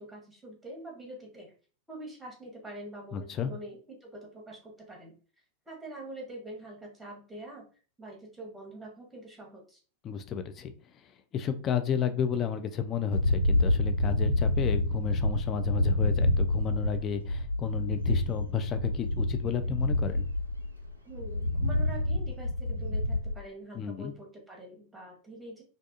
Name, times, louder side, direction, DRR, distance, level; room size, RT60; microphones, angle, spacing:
voice 1, 0.0-1.5 1.9-5.1 5.7-7.6 8.0-9.8 21.0-25.6, right 1 dB, 10° right, 0 dB, 0.9 m, -45 dB
voice 2, 3.1-3.5 10.0-10.7 11.3-20.3 23.7-24.1, left 7 dB, 30° left, 8 dB, 0.3 m, -32 dB
sound 1, 13.1-23.3, left 1 dB, 85° right, 0.4 m, -28 dB
2.4 x 2.3 x 2.5 m, 0.38 s
figure-of-eight pair, 90°, 0 cm